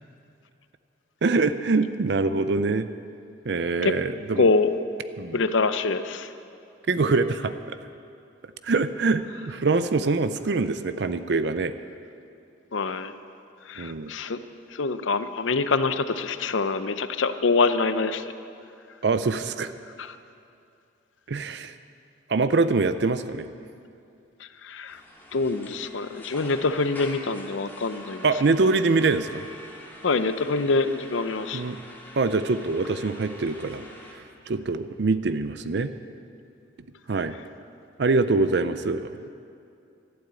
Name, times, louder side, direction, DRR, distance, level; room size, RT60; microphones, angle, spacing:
voice 1, 1.2-2.9 3.4-4.5 5.2-5.4 6.9-7.8 8.6-11.7 13.8-14.1 19.0-19.7 21.3-21.7 22.3-23.5 28.2-29.5 31.5-31.8 32.1-33.9 34.1-35.9 37.1-37.3 38.0-39.3, right 3 dB, 60° right, 11 dB, 0.5 m, -24 dB
voice 2, 4.4-4.7 5.3-6.3 12.7-13.1 13.7-14.4 14.7-18.2 24.6-25.0 25.3-28.3 30.0-31.6, left 3 dB, 85° left, 11 dB, 0.6 m, -25 dB
sound 1, 24.9-34.1, left 1 dB, 10° left, 2.0 m, -45 dB
12.0 x 11.5 x 8.4 m, 2.5 s
head